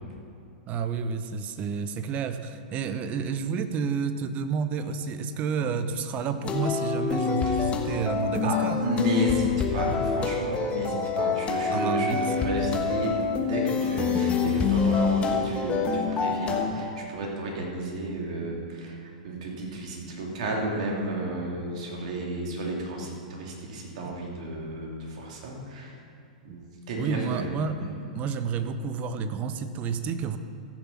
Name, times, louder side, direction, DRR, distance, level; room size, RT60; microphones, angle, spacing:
voice 1, 0.7-8.8 11.7-12.5 26.5-26.6 27.0-30.4, right 5 dB, 35° right, 10 dB, 0.7 m, -30 dB
sound 1, 6.4-16.6, left 5 dB, 25° left, 1.4 m, -26 dB
voice 2, 8.4-13.2 13.5-26.0 26.4-27.5 27.8-27.9, right 1 dB, 60° right, -1 dB, 2.8 m, -32 dB
14.5 x 6.9 x 5.9 m, 2.6 s
hypercardioid pair, 110°, 4 cm